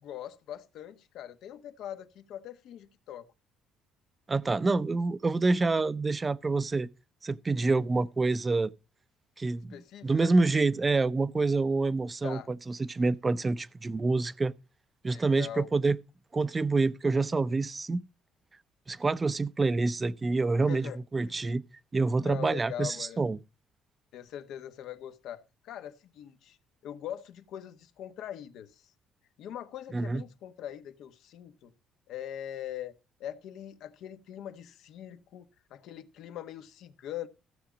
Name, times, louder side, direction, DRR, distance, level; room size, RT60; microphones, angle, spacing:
voice 1, 0.0-3.3 9.7-10.3 12.2-12.5 15.0-15.7 20.6-21.0 21.2-21.5 22.2-23.2 24.1-26.6 26.8-28.9 29.4-31.7 32.1-37.3, left 11 dB, 75° left, 1.1 m, -42 dB
voice 2, 4.3-6.9 7.2-8.7 9.4-9.7 10.0-14.5 15.0-16.0 16.3-18.0 18.9-21.6 21.9-23.4 29.9-30.2, right 3 dB, 25° right, 0.6 m, -27 dB
15.0 x 7.0 x 5.1 m
cardioid pair, 110°, 0 cm